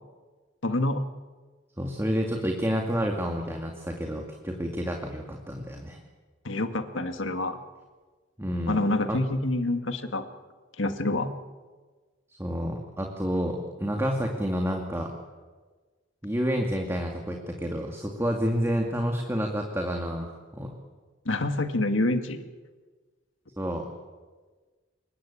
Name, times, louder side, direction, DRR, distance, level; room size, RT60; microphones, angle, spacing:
voice 1, 0.6-1.1 6.4-7.6 8.7-10.2 10.8-11.3 21.3-22.5, left 2 dB, 70° left, 8 dB, 2.0 m, -27 dB
voice 2, 1.8-6.0 8.4-8.8 9.1-9.2 12.4-15.1 16.2-20.7 23.6-23.8, equal, 15° right, 2 dB, 2.4 m, -29 dB
26.5 x 22.5 x 8.7 m, 1.4 s
head